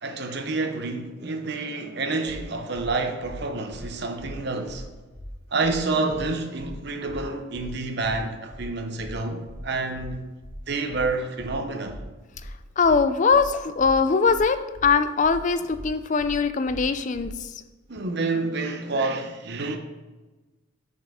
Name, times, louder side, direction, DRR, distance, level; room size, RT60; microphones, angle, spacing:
voice 1, 0.0-4.9 5.5-10.2 10.7-12.0 17.9-19.8, right 3 dB, 50° right, 0.8 m, -28 dB
sound 1, 2.3-2.4 2.7-2.9 3.2-3.4 3.7-3.9 4.2-4.3 4.7-4.8 5.1-5.3 5.6-5.8 6.1-6.3 6.6-6.7 7.1-7.2 7.5-7.7 8.0-8.2 8.5-8.7 9.0-9.1 9.5-9.6 9.9-10.1 10.4-10.6 10.9-11.1 11.4-11.5 11.9-12.0 12.3-12.5 12.8-13.0 13.3-13.5 13.8-13.9 14.3-14.4 14.7-14.9 15.2-15.4 15.7-15.9 16.2-16.3 16.7-16.8 17.1-17.3, equal, 15° left, 0.8 m, -40 dB
voice 2, 12.8-17.3, left 5 dB, 35° left, 0.4 m, -21 dB
6.1 x 5.4 x 4.9 m
head